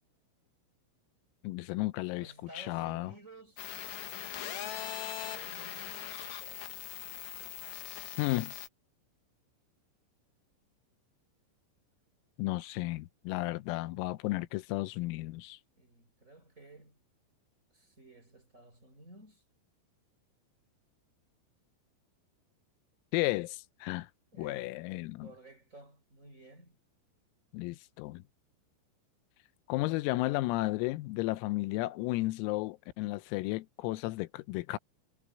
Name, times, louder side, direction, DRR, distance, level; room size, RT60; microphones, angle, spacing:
voice 1, 1.4-3.1 8.2-8.5 12.4-15.6 23.1-24.1 24.4-25.3 27.5-28.2 29.7-34.8, left 19 dB, 90° left, 3.5 m, -33 dB
voice 2, 2.1-4.8 5.2-6.8 15.8-17.0 17.7-19.4 24.3-24.8 25.2-26.8, right 2 dB, 15° right, 4.6 m, -55 dB
sound 1, 3.6-8.7, left 12 dB, 65° left, 3.4 m, -41 dB
omnidirectional pair, 6.0 m